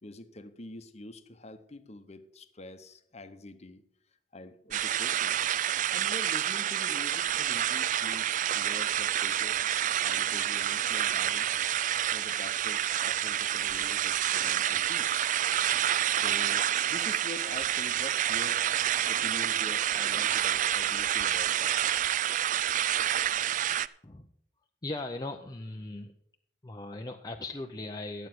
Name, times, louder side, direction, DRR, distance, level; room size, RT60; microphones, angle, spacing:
voice 1, 0.0-3.8 4.3-5.4 5.9-9.6 10.0-15.4 16.1-18.6 19.1-21.8, left 2 dB, 40° left, 10 dB, 0.9 m, -45 dB
sound 1, 4.7-23.9, right 11 dB, 45° right, 0.3 m, -28 dB
voice 2, 24.8-26.1 26.6-28.3, left 2 dB, 20° left, 3 dB, 0.6 m, -38 dB
11.5 x 8.1 x 6.0 m, 0.71 s
head